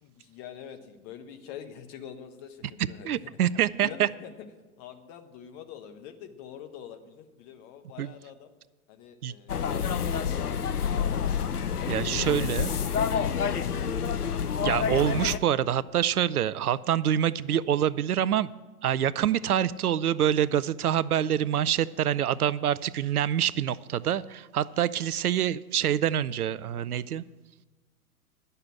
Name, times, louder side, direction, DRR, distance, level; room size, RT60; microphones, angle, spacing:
voice 1, 0.0-4.3 4.8-8.5 8.9-11.0 11.7-13.8, left 9 dB, 35° left, 8 dB, 1.2 m, -46 dB
voice 2, 3.0-4.1 8.0-8.1 9.2-9.3 11.9-12.7 14.6-18.5 18.8-27.2, right 10 dB, 80° right, 19 dB, 0.5 m, -26 dB
sound 1, 9.5-15.4, left 7 dB, 85° left, 0.7 m, -28 dB
11.5 x 6.7 x 8.5 m, 1.2 s
figure-of-eight pair, 105°, 44 cm